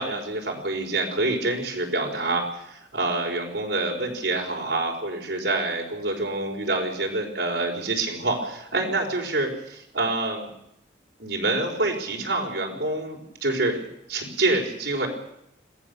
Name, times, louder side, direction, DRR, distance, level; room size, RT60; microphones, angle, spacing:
voice 1, 0.0-10.5 11.2-13.8 14.1-15.1, right 2 dB, 80° right, 0 dB, 4.7 m, -27 dB
26.5 x 17.0 x 6.9 m, 0.77 s
head